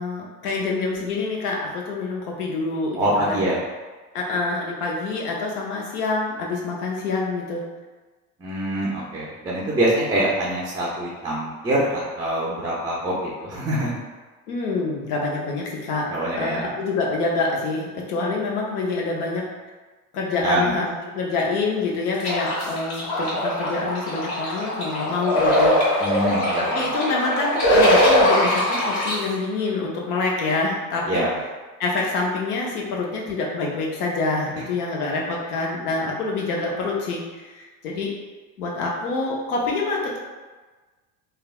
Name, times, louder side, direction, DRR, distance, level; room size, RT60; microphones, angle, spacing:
voice 1, 0.0-3.4 4.1-7.6 14.5-16.1 16.4-19.4 20.1-26.2 26.6-31.2 31.8-38.2 38.6-40.2, left 3 dB, 85° left, -2 dB, 0.8 m, -26 dB
voice 2, 2.9-3.6 8.4-14.0 16.1-16.6 20.4-20.8 26.0-26.9 31.1-31.3, right 1 dB, 10° right, -7 dB, 0.4 m, -24 dB
sound 1, 22.2-29.1, equal, 55° left, 1.4 m, -21 dB
3.2 x 2.2 x 2.3 m, 1.3 s
hypercardioid pair, 85°, 45 cm